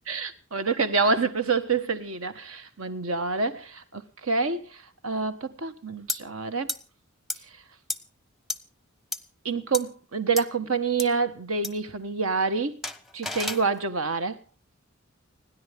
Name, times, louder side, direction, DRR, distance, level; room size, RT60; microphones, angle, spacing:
voice 1, 0.1-6.7 9.4-12.8 13.1-14.4, right 4 dB, 75° right, 1.4 m, -27 dB
sound 1, 6.1-6.2 6.7-6.8 7.3-7.4 7.9-8.0 8.5-8.6 9.1-9.2 9.7-9.8 10.4-10.5 11.0-11.1 11.6-11.7 12.8-13.6, left 2 dB, ahead, 0.7 m, -31 dB
30.0 x 10.5 x 3.5 m
head